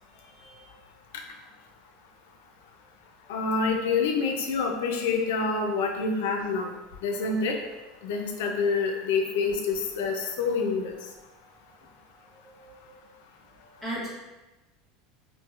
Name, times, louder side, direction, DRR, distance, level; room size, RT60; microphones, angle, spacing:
voice 1, 0.1-0.6 11.8-11.9 12.3-13.0 13.5-14.1, right 1 dB, 5° left, -9 dB, 1.1 m, -40 dB
voice 2, 3.3-6.7 7.0-7.6 8.0-11.0, left 4 dB, 85° left, 3 dB, 0.5 m, -27 dB
4.5 x 2.2 x 2.4 m, 1.1 s
supercardioid pair, 155°, 0 cm